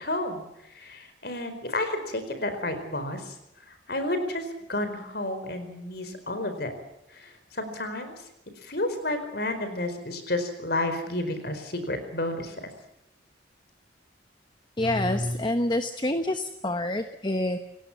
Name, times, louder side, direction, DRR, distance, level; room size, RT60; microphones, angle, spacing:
voice 1, 0.0-3.4 3.7-6.7 7.1-8.3 8.6-12.6, left 1 dB, 55° left, 9 dB, 4.6 m, -31 dB
voice 2, 14.8-17.6, left 1 dB, 25° left, 8 dB, 1.1 m, -27 dB
29.5 x 17.0 x 7.3 m, 0.84 s
head